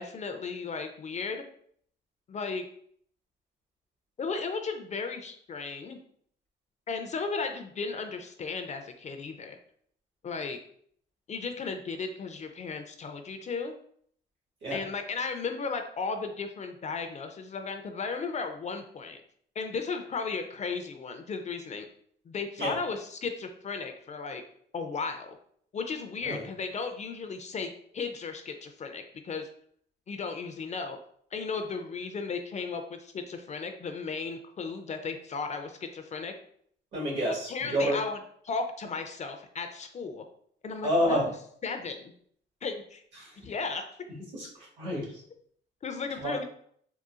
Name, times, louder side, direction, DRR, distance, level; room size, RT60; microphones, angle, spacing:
voice 1, 0.0-1.4 2.3-2.7 4.2-6.0 6.9-9.6 10.2-10.6 11.3-13.7 14.7-19.2 19.6-21.9 22.3-24.4 24.7-25.4 25.7-29.5 30.1-31.0 31.3-36.3 37.5-38.2 38.4-40.3 40.6-41.3 41.6-42.1 42.6-43.0 43.4-43.8 45.8-46.4, left 4 dB, 35° left, 6 dB, 0.4 m, -35 dB
voice 2, 36.9-38.0 40.8-41.2 43.2-43.3 44.3-45.1 46.2-46.3, equal, 65° right, -3 dB, 1.4 m, -29 dB
3.8 x 2.3 x 2.4 m, 0.63 s
cardioid pair, 90°, 20 cm